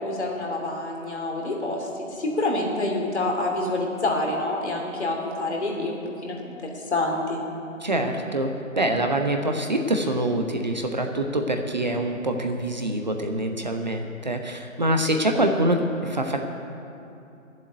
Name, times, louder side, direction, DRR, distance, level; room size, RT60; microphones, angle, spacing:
voice 1, 0.0-6.6 6.9-7.4, left 2 dB, 55° left, 0 dB, 2.9 m, -27 dB
voice 2, 7.8-16.4, right 1 dB, 35° right, 4 dB, 0.8 m, -25 dB
12.0 x 7.5 x 9.5 m, 2.8 s
figure-of-eight pair, 150°, 40 cm